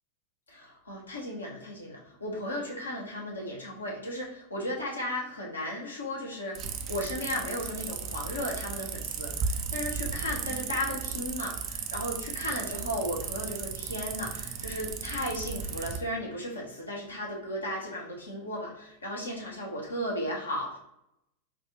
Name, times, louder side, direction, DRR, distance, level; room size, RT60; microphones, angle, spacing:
voice 1, 0.5-20.8, left 1 dB, 80° left, -2 dB, 1.0 m, -35 dB
sound 1, 6.5-16.0, right 6 dB, 40° right, 0.4 m, -35 dB
4.1 x 2.4 x 2.9 m, 0.81 s
figure-of-eight pair, 90°, 0 cm